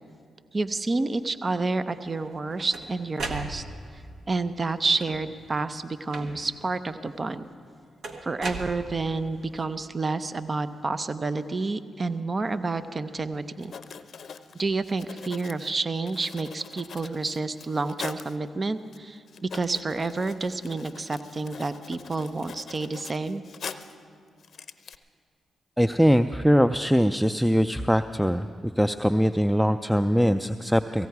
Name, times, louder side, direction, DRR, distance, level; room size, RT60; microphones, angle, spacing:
voice 1, 0.5-3.6 4.3-7.5 8.2-13.7 14.5-23.4, right 3 dB, 40° right, 12 dB, 0.6 m, -29 dB
sound 1, 2.2-4.0 4.9-5.4 6.1-6.7 8.0-9.3, right 3 dB, 70° right, 1.2 m, -37 dB
Writing, 13.6-18.4 18.9-19.0 19.3-24.0 24.4-25.0, left 6 dB, 65° left, 0.6 m, -43 dB
voice 2, 25.8-31.1, equal, ahead, 10 dB, 0.4 m, -22 dB
17.5 x 16.0 x 4.7 m, 2.3 s
supercardioid pair, 45°, 0 cm